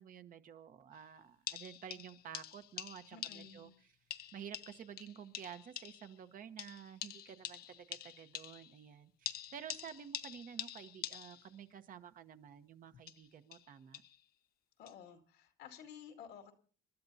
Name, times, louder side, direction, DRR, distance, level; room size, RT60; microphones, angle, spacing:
voice 1, 0.0-3.9 4.3-14.0, right 8 dB, 55° right, 9 dB, 1.1 m, -51 dB
sound 1, 0.9-1.0 1.5-3.7 4.1-6.2 6.6-8.8 9.3-11.6 12.9-14.2 14.9-15.0, left 12 dB, 65° left, 0.7 m, -46 dB
voice 2, 3.1-3.8 14.8-16.5, left 7 dB, 90° left, 5 dB, 2.3 m, -53 dB
28.0 x 12.0 x 2.8 m, 0.42 s
cardioid pair, 110°, 17 cm